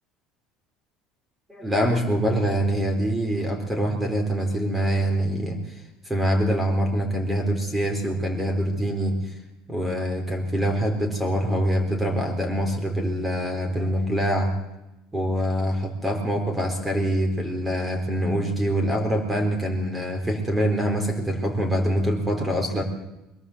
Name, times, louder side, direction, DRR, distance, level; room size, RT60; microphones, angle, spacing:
voice 1, 1.5-9.3 9.7-14.6 15.1-22.8, equal, 15° right, 5 dB, 4.2 m, -25 dB
22.5 x 18.0 x 8.1 m, 0.94 s
supercardioid pair, 105°, 0 cm